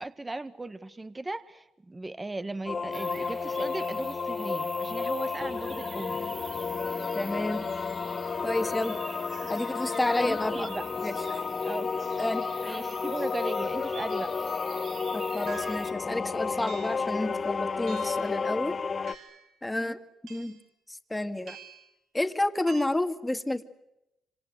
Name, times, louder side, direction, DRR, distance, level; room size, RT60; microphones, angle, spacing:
voice 1, 0.0-6.2 10.2-10.8 11.6-12.0 12.6-14.4 19.8-20.0, right 2 dB, 20° right, 13 dB, 1.5 m, -37 dB
sound 1, 2.7-19.1, left 5 dB, 40° left, 1.2 m, -32 dB
sound 2, 2.9-15.9, right 4 dB, 45° right, 4.7 m, -47 dB
voice 2, 7.1-7.7 8.4-9.0 9.5-10.7 11.0-11.4 12.2-12.8 15.1-18.8 19.6-20.0 20.3-20.6 20.9-21.6 22.1-23.6, left 1 dB, 10° left, 9 dB, 2.1 m, -30 dB
sound 3, 14.5-14.7 15.5-16.0 16.7-17.1 17.9-18.3 19.1-19.5 20.3-20.7 21.5-21.9 22.7-22.9, right 6 dB, 65° right, 5.7 m, -47 dB
26.5 x 26.5 x 7.9 m, 0.86 s
cardioid pair, 90°, 0 cm